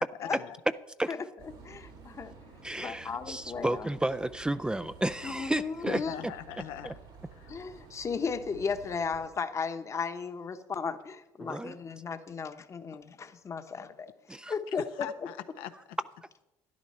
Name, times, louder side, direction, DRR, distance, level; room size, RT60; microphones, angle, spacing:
voice 1, 0.2-0.6 5.9-6.9 7.3-7.5 14.8-15.7, left 11 dB, 85° left, 0.7 m, -40 dB
sound 1, 1.4-9.3, right 4 dB, 80° right, 3.4 m, -52 dB
voice 2, 1.6-2.3 2.8-3.9 5.2-6.2 7.5-14.1 14.5-15.1, left 5 dB, 35° left, 1.0 m, -35 dB
voice 3, 2.6-6.3 6.8-6.9 11.4-11.8 14.3-14.5, right 1 dB, 10° right, 0.4 m, -32 dB
12.5 x 10.5 x 4.3 m
supercardioid pair, 90°, 9 cm